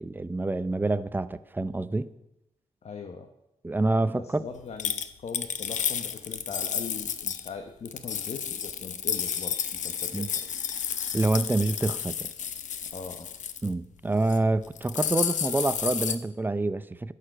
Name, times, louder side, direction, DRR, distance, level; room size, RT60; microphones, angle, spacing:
voice 1, 0.0-2.1 3.6-4.4 10.1-10.3 11.1-12.3 13.6-17.1, right 2 dB, 15° right, 0.5 m, -27 dB
voice 2, 2.8-3.3 4.2-10.3 12.9-13.3, left 5 dB, 60° left, 1.0 m, -40 dB
sound 1, 4.8-7.5 7.9-13.7 14.1-14.4 14.6-16.2, left 8 dB, 80° left, 0.8 m, -31 dB
11.5 x 6.7 x 7.5 m
cardioid pair, 95°, 12 cm